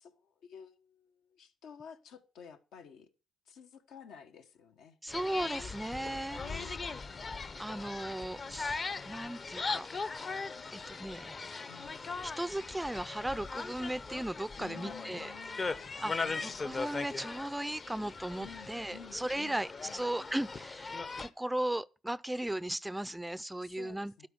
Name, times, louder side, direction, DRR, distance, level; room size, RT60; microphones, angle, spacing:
voice 1, 0.0-3.1 3.5-5.0 6.4-7.0 11.7-12.1 14.6-16.8 18.4-20.0 23.6-24.3, left 7 dB, 85° left, 1.3 m, -53 dB
voice 2, 5.0-6.8 7.6-9.9 10.7-11.7 12.2-15.3 16.0-16.2 16.4-24.3, right 1 dB, 10° right, 0.4 m, -37 dB
sound 1, 5.1-21.3, left 4 dB, 40° left, 0.7 m, -39 dB
12.0 x 4.4 x 6.4 m
cardioid pair, 90°, 0 cm